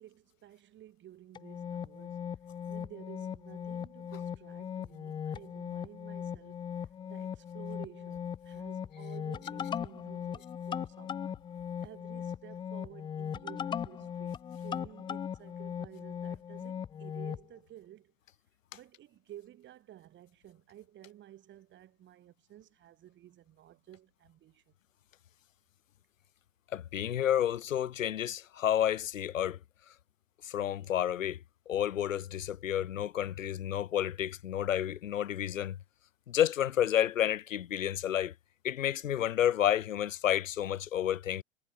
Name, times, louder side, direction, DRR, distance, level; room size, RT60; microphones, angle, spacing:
voice 1, 0.0-2.3 2.7-11.4 11.8-18.1 18.7-24.7, right 13 dB, 30° right, 2.8 m, -53 dB
sound 1, 1.3-17.4, left 8 dB, 10° left, 0.5 m, -39 dB
voice 2, 26.7-29.6 30.4-31.4 31.7-35.8 36.3-38.3 38.6-41.4, left 10 dB, 80° left, 0.9 m, -30 dB
hypercardioid pair, 105°, 39 cm